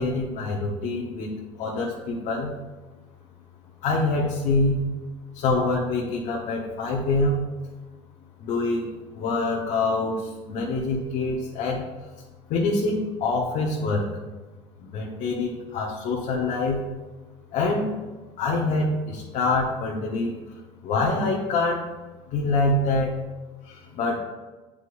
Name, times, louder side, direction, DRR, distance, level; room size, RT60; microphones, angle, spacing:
voice 1, 0.0-1.3 1.6-2.5 3.8-4.8 5.3-7.4 8.4-11.9 12.5-14.1 14.8-16.8 17.5-17.9 18.4-20.4 20.8-21.9 22.3-23.1 23.6-24.2, left 3 dB, 60° left, -3 dB, 1.2 m, -25 dB
8.9 x 4.9 x 2.6 m, 1.2 s
supercardioid pair, 105°, 15 cm